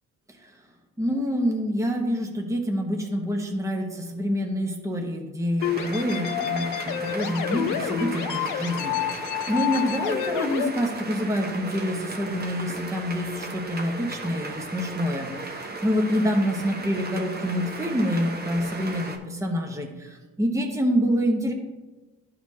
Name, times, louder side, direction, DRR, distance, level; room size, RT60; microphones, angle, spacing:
voice 1, 1.0-21.5, equal, 10° right, 2 dB, 1.1 m, -27 dB
sound 1, 5.6-10.7, left 11 dB, 80° left, 0.5 m, -29 dB
sound 2, 5.6-19.2, right 3 dB, 35° right, 1.1 m, -36 dB
12.0 x 4.3 x 2.8 m, 1.2 s
cardioid pair, 90°, 30 cm